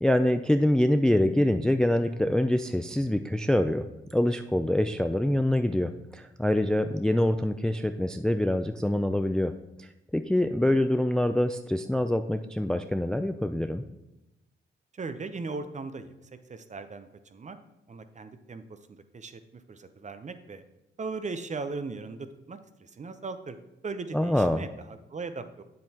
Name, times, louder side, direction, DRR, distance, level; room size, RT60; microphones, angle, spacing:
voice 1, 0.0-9.5 9.8-13.8 24.1-24.6, left 1 dB, 5° left, 8 dB, 0.3 m, -25 dB
voice 2, 14.9-16.1 16.5-17.6 17.9-18.8 19.1-20.6 21.0-23.6 23.8-25.6, right 4 dB, 35° right, 10 dB, 0.6 m, -38 dB
7.6 x 7.5 x 2.8 m, 0.93 s
cardioid pair, 70°, 21 cm